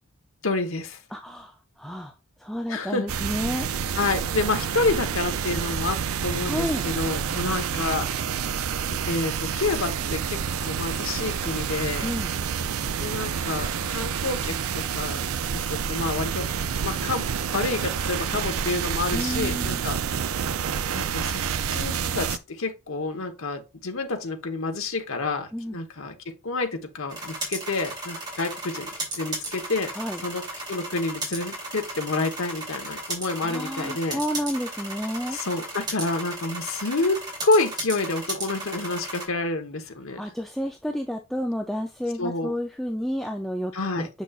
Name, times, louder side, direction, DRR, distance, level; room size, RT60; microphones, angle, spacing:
voice 1, 0.4-1.0 2.7-3.1 4.0-8.5 8.9-12.1 13.0-16.5 16.8-17.3 17.5-20.0 20.9-21.4 21.7-29.9 30.2-34.2 35.3-40.2 42.2-42.5 43.7-44.1, left 3 dB, 70° left, 1.1 m, -29 dB
voice 2, 1.1-2.1 2.4-3.7 6.4-6.8 12.0-12.3 19.1-19.8 25.5-25.8 29.9-30.2 33.3-35.4 40.2-44.1, equal, ahead, 0.4 m, -31 dB
sound 1, 3.1-22.4, right 7 dB, 75° right, 0.5 m, -28 dB
sound 2, 27.1-39.2, right 2 dB, 20° right, 2.7 m, -35 dB
6.9 x 6.2 x 2.4 m
head